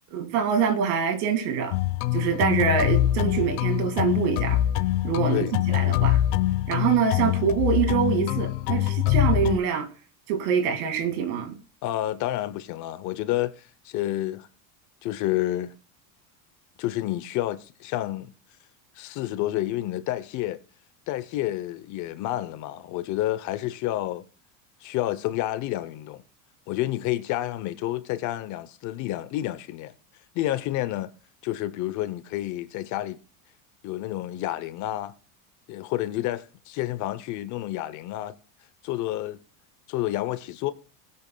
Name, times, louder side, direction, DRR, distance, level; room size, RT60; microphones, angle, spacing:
voice 1, 0.1-1.7 2.1-4.6 5.0-6.2 6.7-9.9 10.3-11.5, right 7 dB, 75° right, 2.3 m, -25 dB
sound 1, 1.7-9.6, left 13 dB, 85° left, 0.9 m, -24 dB
voice 2, 11.8-14.5 15.0-15.7 16.8-18.3 18.9-20.6 21.1-24.2 24.8-26.2 26.7-29.9 30.3-31.1 31.4-33.2 33.8-35.1 35.7-38.3 38.8-39.4 39.9-40.7, left 14 dB, 45° left, 0.7 m, -29 dB
20.0 x 8.4 x 2.2 m
supercardioid pair, 150°, 43 cm